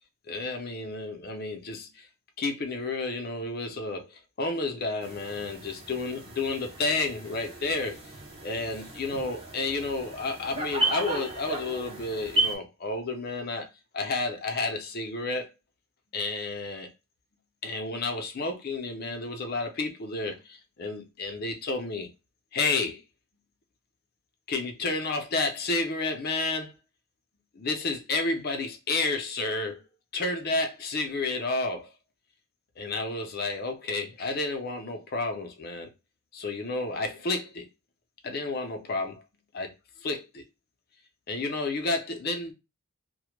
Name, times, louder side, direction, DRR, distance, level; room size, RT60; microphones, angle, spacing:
voice 1, 0.3-2.1 2.4-8.0 8.4-13.7 13.9-15.5 16.1-16.9 17.6-22.1 22.5-23.0 24.5-26.7 27.6-29.8 30.1-31.9 32.8-35.9 36.3-37.7 38.2-39.2 39.5-39.7 40.0-40.4 41.3-42.5, left 3 dB, 45° left, 0.5 m, -31 dB
sound 1, 5.0-12.6, right 2 dB, 25° right, 0.5 m, -34 dB
2.1 x 2.1 x 3.0 m
head